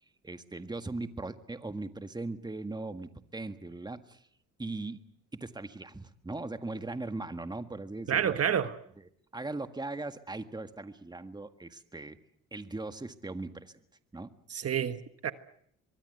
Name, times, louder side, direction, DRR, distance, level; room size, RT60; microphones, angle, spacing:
voice 1, 0.2-4.2 4.6-5.0 5.3-8.7 9.0-12.2 12.5-13.8 14.1-14.3, right 2 dB, 15° right, 1.7 m, -39 dB
voice 2, 8.1-8.8 14.5-15.3, right 8 dB, 55° right, 1.4 m, -29 dB
23.5 x 23.5 x 8.0 m
cardioid pair, 90°, 30 cm